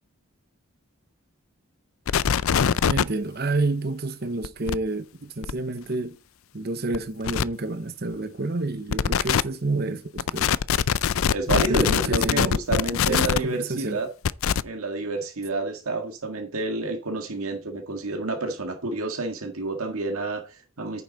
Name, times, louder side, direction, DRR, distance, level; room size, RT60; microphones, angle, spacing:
sound 1, 2.1-3.0 4.4-4.8 5.4-5.5 6.9-7.0 7.2-7.4 8.9-9.4 10.2-13.4 14.2-14.6, left 7 dB, 70° left, 0.4 m, -22 dB
voice 1, 2.9-6.2 6.5-10.6 11.5-12.6 13.1-14.0, right 2 dB, 45° right, 0.9 m, -29 dB
voice 2, 11.3-14.1 14.6-21.0, right 2 dB, 80° right, 1.7 m, -29 dB
9.6 x 7.2 x 4.0 m
head